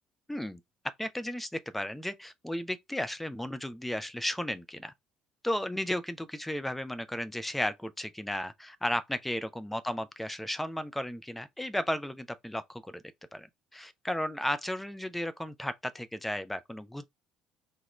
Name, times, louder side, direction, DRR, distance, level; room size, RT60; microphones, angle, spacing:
voice 1, 0.3-0.6 1.0-4.9 5.4-13.0 13.3-13.5 13.7-17.0, left 1 dB, 5° left, 0.5 m, -34 dB
2.9 x 2.2 x 3.0 m
figure-of-eight pair, 55°, 2 cm